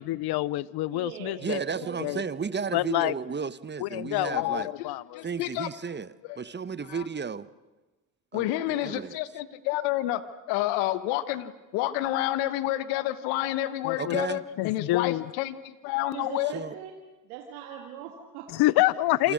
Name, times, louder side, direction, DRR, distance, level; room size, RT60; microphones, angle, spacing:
voice 1, 0.0-1.6 2.0-2.2 2.7-3.1 3.8-5.2 13.8-14.2 14.6-15.3 18.5-19.3, left 17 dB, 60° left, 0.7 m, -27 dB
voice 2, 0.9-2.5 16.1-16.9 17.2-18.5, right 9 dB, 90° right, 2.2 m, -41 dB
voice 3, 1.4-4.7 5.2-7.5 8.3-9.2 14.0-14.4 16.4-16.8 19.2-19.3, right 5 dB, 25° right, 1.1 m, -33 dB
voice 4, 4.3-4.9 5.1-5.7 6.3-6.4 6.9-7.0 8.3-10.2 10.5-16.5, left 15 dB, 80° left, 1.5 m, -29 dB
27.0 x 26.5 x 6.5 m
supercardioid pair, 70°, 43 cm